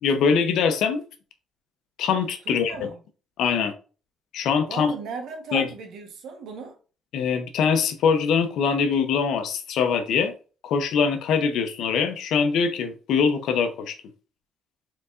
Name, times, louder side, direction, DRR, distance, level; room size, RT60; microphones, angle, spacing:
voice 1, 0.0-1.0 2.0-2.9 3.4-3.7 4.3-5.0 5.5-5.7 7.1-10.3 10.6-13.9, left 6 dB, 80° left, 0.8 m, -23 dB
voice 2, 2.4-3.0 4.7-6.8, right 5 dB, 80° right, 1.3 m, -36 dB
4.5 x 4.0 x 2.6 m
cardioid pair, 90°, 0 cm